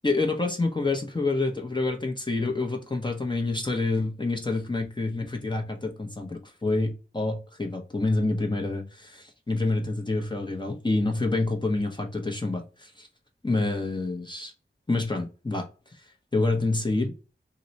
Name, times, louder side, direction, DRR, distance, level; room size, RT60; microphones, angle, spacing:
voice 1, 0.0-13.1 13.4-14.5 14.9-15.7 16.3-17.1, left 2 dB, 25° left, 0.6 m, -27 dB
2.9 x 2.1 x 3.9 m
wide cardioid pair, 45°, 20 cm